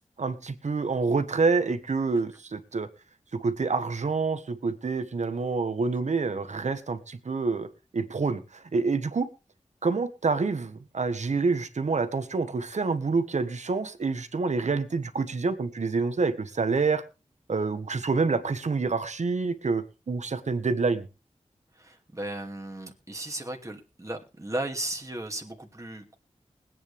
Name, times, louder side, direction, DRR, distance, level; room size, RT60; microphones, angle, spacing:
voice 1, 0.2-2.9 3.3-7.7 7.9-9.3 9.8-17.0 17.5-21.1, right 4 dB, 75° right, 10 dB, 1.4 m, -27 dB
voice 2, 21.7-26.2, right 1 dB, 25° right, 2 dB, 2.4 m, -35 dB
21.0 x 9.3 x 3.4 m, 0.30 s
cardioid pair, 50°, 12 cm